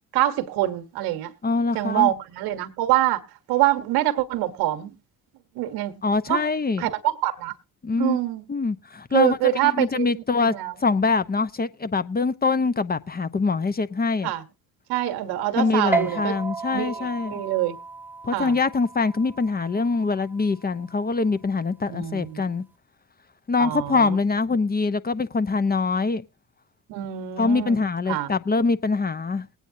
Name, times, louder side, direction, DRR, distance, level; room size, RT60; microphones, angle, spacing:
voice 1, 0.1-1.3 1.7-3.2 3.5-5.0 5.5-6.0 6.3-6.4 6.8-7.5 8.0-8.4 9.1-10.7 14.2-14.4 14.9-16.3 16.7-17.8 18.3-18.6 21.9-22.5 23.6-24.2 26.9-27.8 28.1-28.3, right 15 dB, 75° right, 1.3 m, -25 dB
voice 2, 1.4-2.1 6.0-6.9 7.8-8.2 8.5-10.5 10.8-14.3 15.6-17.4 18.2-22.6 23.5-26.2 27.4-29.5, left 4 dB, 25° left, 0.8 m, -24 dB
sound 1, 15.9-22.7, right 4 dB, 5° right, 1.0 m, -34 dB
21.0 x 9.1 x 2.7 m
hypercardioid pair, 55°, 39 cm